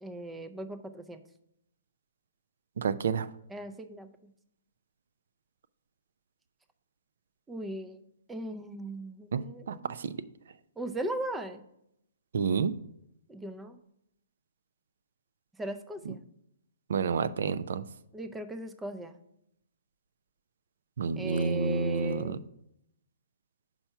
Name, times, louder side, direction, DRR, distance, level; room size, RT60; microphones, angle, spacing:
voice 1, 0.0-1.2 3.5-4.1 7.5-8.0 8.3-9.9 10.8-11.6 13.3-13.8 15.6-16.2 18.1-19.2 21.2-22.4, right 1 dB, 10° right, 10 dB, 0.5 m, -38 dB
voice 2, 2.8-3.3 9.3-10.2 12.3-12.7 16.1-16.2 16.9-17.8 21.0-22.4, right 5 dB, 65° right, 14 dB, 0.4 m, -29 dB
5.5 x 4.4 x 5.7 m, 0.78 s
hypercardioid pair, 135°, 0 cm